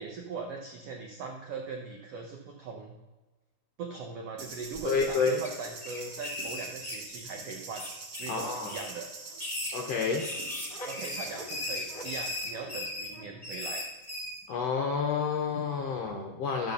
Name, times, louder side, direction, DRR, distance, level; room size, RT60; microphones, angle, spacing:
voice 1, 0.0-3.0 3.8-7.9 8.2-9.1 10.9-13.8, right 4 dB, 80° right, 1 dB, 1.3 m, -40 dB
sound 1, 4.4-12.5, right 3 dB, 55° right, 2.6 m, -44 dB
sound 2, 4.7-5.5 5.8-7.4 7.8-9.0 9.3-14.4, left 2 dB, 15° left, 1.9 m, -38 dB
voice 2, 4.8-5.4 8.3-8.7 9.7-10.2 14.5-16.7, left 5 dB, 75° left, 1 dB, 1.5 m, -29 dB
12.0 x 5.2 x 6.6 m, 1.2 s
omnidirectional pair, 3.9 m